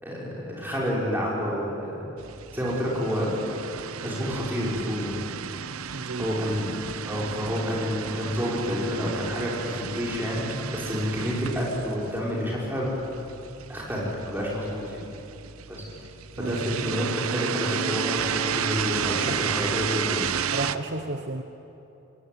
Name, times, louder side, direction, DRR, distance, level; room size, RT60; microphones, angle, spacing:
voice 1, 0.0-2.1 2.5-3.3 4.0-5.2 6.2-6.7 7.1-12.9 13.7-15.0 15.7-15.8 16.4-20.3, equal, 10° right, -5 dB, 6.1 m, -29 dB
sound 1, 2.2-20.8, right 7 dB, 90° right, 0.8 m, -33 dB
voice 2, 5.9-6.3 16.4-16.8 19.2-19.4 20.5-21.4, right 2 dB, 50° right, 5 dB, 1.1 m, -33 dB
25.5 x 20.0 x 9.5 m, 2.9 s
head